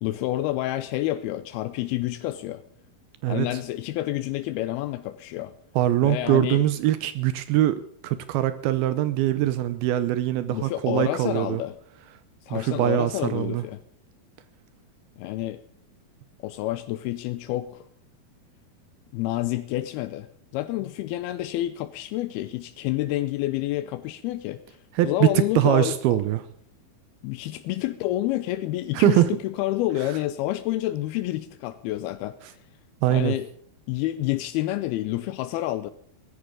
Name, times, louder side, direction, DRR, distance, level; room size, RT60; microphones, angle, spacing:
voice 1, 0.0-2.6 3.3-5.5 6.0-6.6 10.5-11.8 12.4-13.8 15.2-15.6 16.4-17.9 19.1-20.3 20.5-24.8 25.0-26.2 27.2-32.4 33.1-33.5 33.9-35.9, left 15 dB, 85° left, 11 dB, 2.6 m, -28 dB
voice 2, 5.8-11.6 12.5-13.6 25.0-25.3 25.6-26.4 28.9-29.3 33.0-33.3, right 13 dB, 80° right, 13 dB, 2.7 m, -22 dB
18.5 x 14.5 x 3.7 m, 0.65 s
omnidirectional pair, 4.4 m